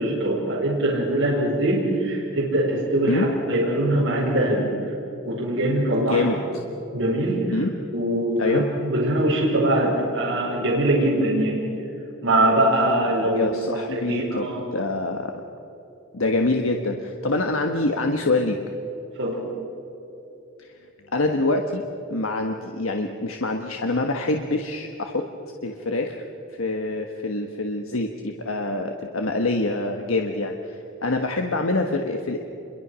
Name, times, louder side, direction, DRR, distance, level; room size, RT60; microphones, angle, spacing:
voice 1, 0.0-4.7 5.2-6.3 6.9-7.6 7.9-11.6 12.2-13.6 13.9-14.6 19.2-19.4, right 1 dB, 65° right, -5 dB, 5.0 m, -22 dB
voice 2, 13.3-15.4 16.1-18.6 20.6-20.7 21.1-21.8 22.1-25.3 25.6-26.2 26.5-32.4, left 2 dB, 75° left, 3 dB, 1.4 m, -25 dB
28.0 x 23.0 x 6.3 m, 3.0 s
head